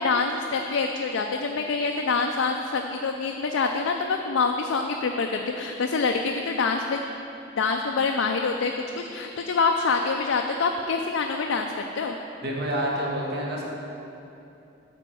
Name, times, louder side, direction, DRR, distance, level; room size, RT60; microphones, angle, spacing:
voice 1, 0.0-7.0 7.6-12.1, left 4 dB, 75° left, 3 dB, 0.4 m, -26 dB
voice 2, 12.4-13.6, equal, 55° right, -3 dB, 1.5 m, -28 dB
8.3 x 4.5 x 6.9 m, 2.8 s
head